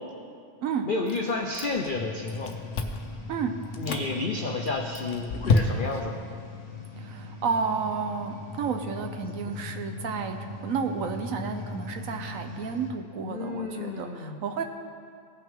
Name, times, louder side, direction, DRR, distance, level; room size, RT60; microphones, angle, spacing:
voice 1, 0.8-2.6 3.8-6.2 9.4-9.6 13.2-14.5, left 3 dB, 70° left, 1 dB, 0.4 m, -31 dB
Chewing mastication, 1.1-2.0 2.3-3.1 3.6-4.1 4.6-6.1, left 4 dB, 55° left, 0.9 m, -28 dB
sound 1, 1.9-12.9, left 3 dB, 40° left, 1.3 m, -40 dB
voice 2, 7.0-10.4 10.6-14.6, right 5 dB, 65° right, 6 dB, 0.9 m, -31 dB
18.0 x 6.0 x 3.6 m, 2.3 s
omnidirectional pair, 1.8 m